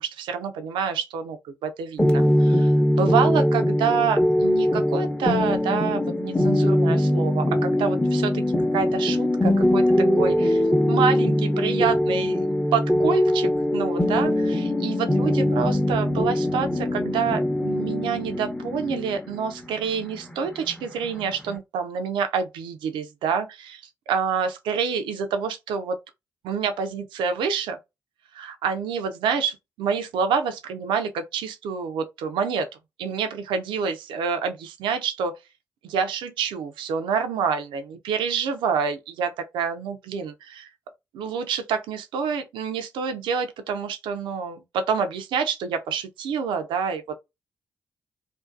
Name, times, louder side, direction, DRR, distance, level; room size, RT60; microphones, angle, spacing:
voice 1, 0.0-8.4 8.7-23.8 24.1-26.0 26.4-27.8 28.3-32.7 33.0-35.4 35.8-40.7 41.1-47.2, right 6 dB, 75° right, 0.4 m, -27 dB
sound 1, 2.0-21.6, left 1 dB, 10° left, 0.7 m, -22 dB
2.5 x 2.2 x 2.4 m
hypercardioid pair, 40°, 8 cm